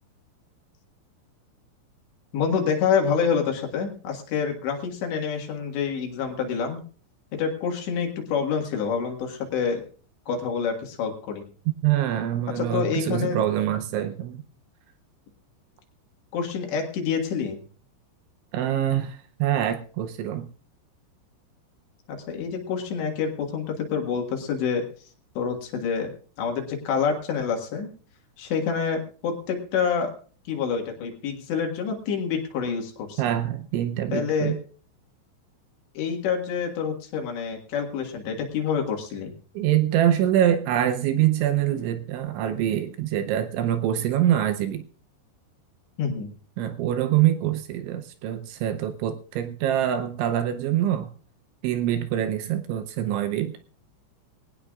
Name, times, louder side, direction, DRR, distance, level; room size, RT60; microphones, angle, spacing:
voice 1, 2.3-6.8 7.3-9.8 10.3-11.5 12.6-13.4 16.3-17.6 22.1-24.8 25.4-26.1 26.4-27.9 28.4-30.1 30.5-33.2 34.1-34.6 36.0-39.3 46.0-46.3, left 6 dB, 65° left, 2 dB, 3.7 m, -27 dB
voice 2, 11.7-14.4 18.5-20.5 33.2-34.6 39.6-44.8 46.6-51.1 51.6-53.5, right 11 dB, 80° right, 8 dB, 2.9 m, -25 dB
21.0 x 18.0 x 2.4 m, 0.41 s
omnidirectional pair, 5.8 m